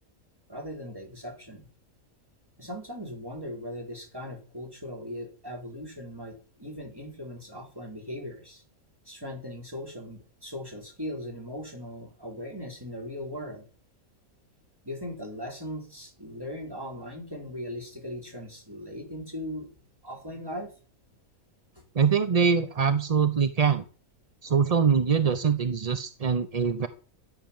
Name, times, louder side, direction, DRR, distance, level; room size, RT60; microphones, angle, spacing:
voice 1, 0.5-1.7 2.6-8.6 9.0-13.7 14.8-19.7 20.0-20.7 21.1-21.2 21.7-21.8, equal, 15° right, 1 dB, 4.3 m, -39 dB
voice 2, 21.9-23.8 24.4-26.9, right 6 dB, 35° right, 12 dB, 0.6 m, -23 dB
13.5 x 9.2 x 7.2 m, 0.39 s
omnidirectional pair, 1.5 m